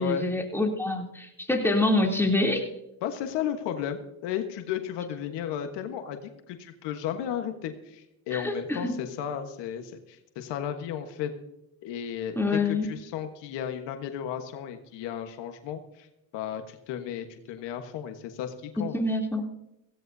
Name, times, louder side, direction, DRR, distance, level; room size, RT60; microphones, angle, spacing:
voice 1, 0.0-2.7 8.3-8.9 12.3-12.9 18.9-19.4, left 2 dB, 5° left, 0 dB, 3.1 m, -26 dB
voice 2, 3.0-11.3 11.8-16.1 16.3-18.9, left 9 dB, 85° left, 7 dB, 1.4 m, -34 dB
17.0 x 16.5 x 2.7 m, 0.86 s
supercardioid pair, 75°, 41 cm